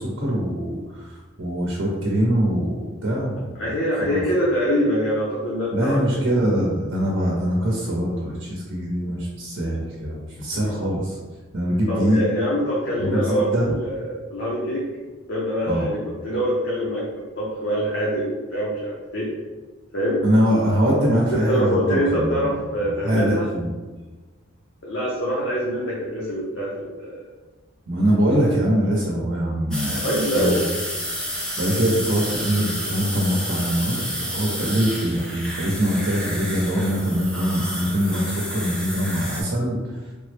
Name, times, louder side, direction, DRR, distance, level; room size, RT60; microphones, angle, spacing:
voice 1, 0.0-3.6 4.1-4.2 5.7-11.2 11.5-12.2 13.0-13.7 15.6-15.9 20.2-22.5 23.0-23.7 27.9-30.7 31.6-39.9, equal, 70° right, -4 dB, 0.7 m, -23 dB
voice 2, 3.6-6.3 11.9-14.9 15.3-17.1 17.4-19.3 19.9-20.2 21.5-23.5 24.8-27.2 30.0-30.7, equal, 60° left, -6 dB, 0.6 m, -24 dB
sound 1, 29.7-39.4, equal, 5° left, 0.3 m, -30 dB
3.4 x 2.1 x 3.2 m, 1.3 s
head